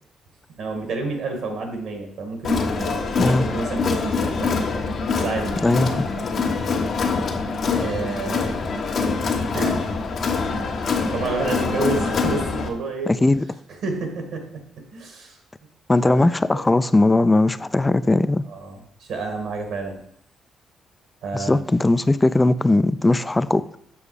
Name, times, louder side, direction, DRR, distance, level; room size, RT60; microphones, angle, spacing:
voice 1, 0.6-4.7 5.2-5.6 7.7-8.7 9.5-9.8 11.1-13.1 13.8-14.6 14.9-15.4 16.0-16.3 18.5-20.0 21.2-21.6, right 3 dB, 75° right, 1.9 m, -29 dB
Crowd, 2.4-12.7, left 4 dB, 55° left, 1.2 m, -24 dB
voice 2, 5.6-6.1 13.1-13.5 15.9-18.4 21.3-23.8, left 2 dB, 15° left, 0.4 m, -19 dB
7.1 x 6.4 x 4.9 m
cardioid pair, 90°, 0 cm